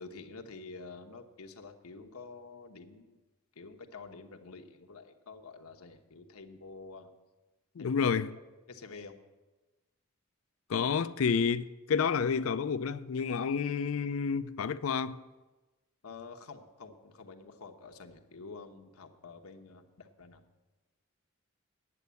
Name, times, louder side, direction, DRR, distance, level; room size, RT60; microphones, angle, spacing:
voice 1, 0.0-3.2 3.5-7.1 7.8-8.1 8.7-9.2 16.0-20.4, left 4 dB, 85° left, 1.1 m, -48 dB
voice 2, 7.8-8.3 10.7-15.2, left 6 dB, 70° left, 0.4 m, -30 dB
9.8 x 7.8 x 8.3 m
head